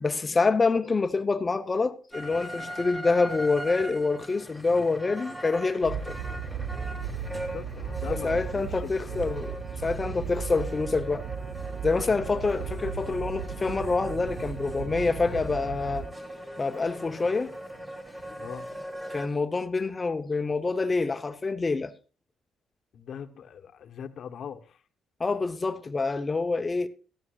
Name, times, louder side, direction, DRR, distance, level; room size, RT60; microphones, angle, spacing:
voice 1, 0.0-6.2 8.1-9.6 9.8-11.3 11.8-16.1 16.6-17.5 19.1-21.9 25.2-26.9, left 3 dB, 25° left, 0.8 m, -26 dB
sound 1, 2.1-19.3, equal, 15° right, 2.4 m, -40 dB
sound 2, 5.8-16.1, right 6 dB, 70° right, 0.7 m, -36 dB
voice 2, 7.3-9.4 12.1-12.4 18.4-18.7 22.9-24.8, left 7 dB, 65° left, 1.0 m, -41 dB
13.5 x 13.0 x 2.4 m
cardioid pair, 90°, 0 cm